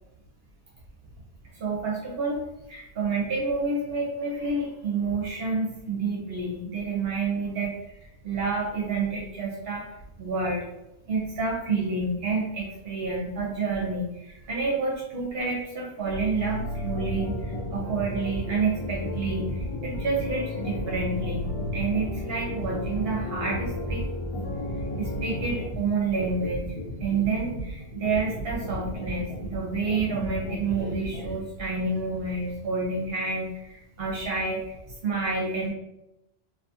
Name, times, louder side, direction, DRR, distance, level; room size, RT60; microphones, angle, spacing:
voice 1, 1.5-9.9 10.2-10.7 11.1-24.0 25.0-26.6 27.0-34.7 35.0-35.7, right 4 dB, 70° right, -3 dB, 0.9 m, -29 dB
sound 1, 16.0-25.6, left 2 dB, 80° left, 0.9 m, -34 dB
sound 2, 16.7-31.3, right 1 dB, 55° left, 1.2 m, -35 dB
2.5 x 2.3 x 2.7 m, 0.88 s
omnidirectional pair, 1.1 m